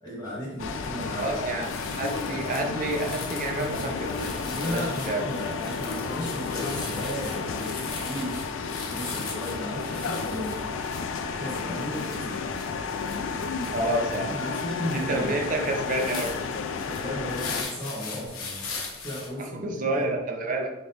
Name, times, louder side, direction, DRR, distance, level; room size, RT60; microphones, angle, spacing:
voice 1, 0.0-1.4 2.2-2.4 4.4-10.5 11.2-12.5 13.7-15.3 16.7-19.7 19.9-20.1, equal, 20° left, -11 dB, 1.2 m, -35 dB
sound 1, 0.6-17.6, left 5 dB, 65° left, 0.3 m, -32 dB
sound 2, 1.2-1.4 1.6-19.3, left 4 dB, 85° left, 0.9 m, -40 dB
voice 2, 1.2-4.3 4.6-5.3 13.7-14.4 14.9-16.4 19.5-20.7, right 2 dB, 40° right, 2 dB, 0.5 m, -29 dB
4.1 x 2.9 x 3.4 m, 0.99 s
head